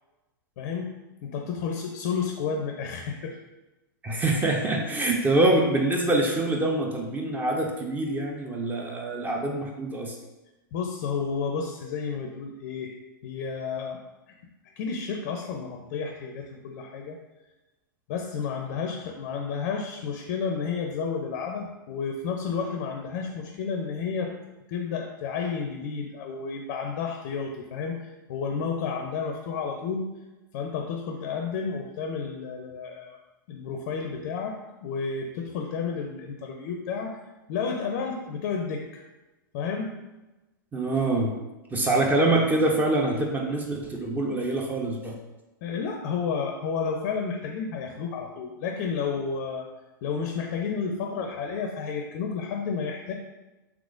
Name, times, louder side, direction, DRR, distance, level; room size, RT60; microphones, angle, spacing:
voice 1, 0.6-0.9 1.2-3.4 10.7-12.9 13.2-14.0 14.3-14.4 14.8-17.2 18.1-24.3 24.7-30.1 30.5-33.2 33.5-37.2 37.5-39.0 39.5-39.9 45.6-49.7 50.0-53.1, left 5 dB, 55° left, 3 dB, 0.4 m, -31 dB
voice 2, 4.0-10.1 40.7-41.4 41.7-45.2, right 2 dB, 15° right, 1 dB, 0.4 m, -25 dB
3.5 x 2.9 x 2.5 m, 1.1 s
hypercardioid pair, 100°, 11 cm